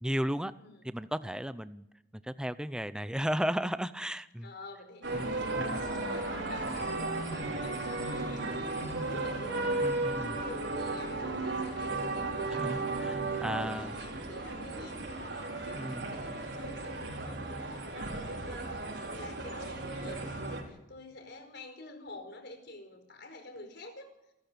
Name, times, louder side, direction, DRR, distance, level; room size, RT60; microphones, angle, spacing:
voice 1, 0.0-0.5 0.8-1.9 2.2-4.5 5.1-5.3 5.6-5.9 9.8-10.3 12.6-13.9 15.7-16.0, equal, 5° right, 13 dB, 0.6 m, -34 dB
voice 2, 0.6-1.0 4.4-15.2 15.6-24.1, left 2 dB, 60° left, 6 dB, 4.7 m, -48 dB
sound 1, 5.0-20.6, right 2 dB, 65° right, 5.1 m, -35 dB
28.5 x 14.0 x 6.9 m, 0.89 s
head